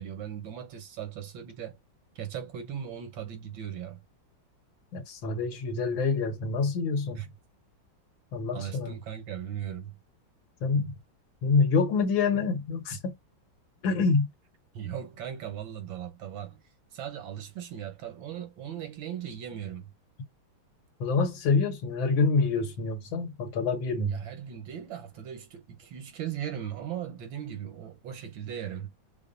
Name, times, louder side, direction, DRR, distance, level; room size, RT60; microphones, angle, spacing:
voice 1, 0.0-1.8 2.2-4.0 7.2-7.3 8.5-10.0 14.7-16.6 16.9-19.9 24.1-28.9, right 9 dB, 80° right, 1.8 m, -38 dB
voice 2, 4.9-7.2 8.3-9.0 10.6-10.9 11.4-13.0 13.8-14.3 21.0-24.2, left 4 dB, 80° left, 1.8 m, -26 dB
5.6 x 2.1 x 2.6 m
omnidirectional pair, 2.1 m